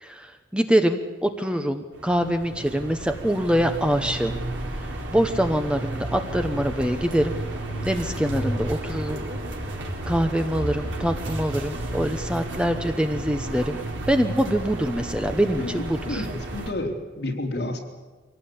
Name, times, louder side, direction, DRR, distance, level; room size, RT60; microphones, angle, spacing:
voice 1, 0.0-4.4 5.1-7.4 7.8-9.2 10.1-13.8 14.1-16.3, equal, 5° right, 6 dB, 1.0 m, -24 dB
sound 1, 1.9-16.7, right 1 dB, 85° right, 4.1 m, -32 dB
voice 2, 15.6-17.8, left 1 dB, 60° left, 0 dB, 3.7 m, -31 dB
24.5 x 17.5 x 8.7 m, 1.2 s
head